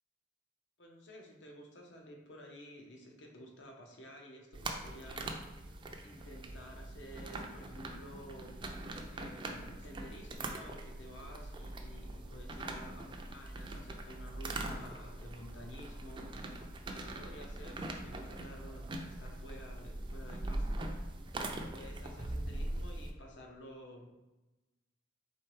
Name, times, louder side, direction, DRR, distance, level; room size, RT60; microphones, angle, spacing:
voice 1, 0.8-5.3 6.0-8.6 9.1-16.3 16.9-20.8 21.7-24.1, equal, 65° left, 1 dB, 0.8 m, -52 dB
sound 1, 4.5-23.1, right 2 dB, 25° right, 0.4 m, -42 dB
4.4 x 3.5 x 3.2 m, 1.0 s
head